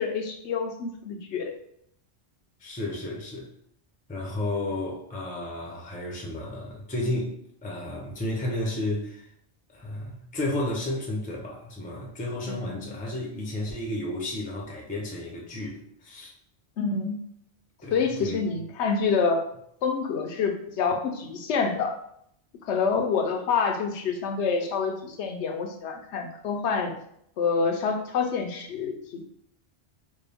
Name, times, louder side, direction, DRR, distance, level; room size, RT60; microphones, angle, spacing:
voice 1, 0.0-1.5 12.5-12.9 16.8-17.2 17.9-19.4 19.8-22.0 22.6-26.9 27.4-29.2, left 5 dB, 75° left, 5 dB, 0.9 m, -27 dB
voice 2, 2.6-3.5 4.1-7.4 7.6-9.3 9.7-16.3 17.8-18.6, left 1 dB, 10° left, -2 dB, 0.5 m, -32 dB
4.3 x 2.2 x 3.4 m, 0.70 s
omnidirectional pair, 1.2 m